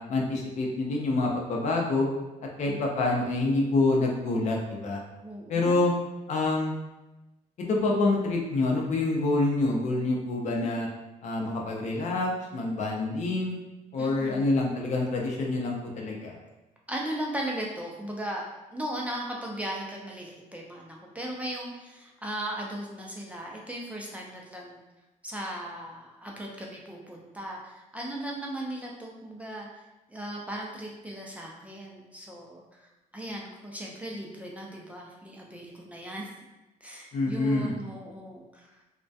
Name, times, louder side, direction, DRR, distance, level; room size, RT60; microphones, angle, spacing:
voice 1, 0.0-2.1 2.6-5.0 5.5-5.9 6.3-6.7 7.7-10.9 11.2-13.5 13.9-16.4 37.1-37.7, left 2 dB, 55° left, -1 dB, 0.5 m, -27 dB
voice 2, 5.2-5.8 14.0-14.5 16.9-18.5 18.7-24.8 25.2-29.7 30.1-36.3 36.8-38.8, right 1 dB, 10° right, -2 dB, 0.4 m, -37 dB
2.3 x 2.1 x 2.6 m, 1.0 s
cardioid pair, 105°, 14 cm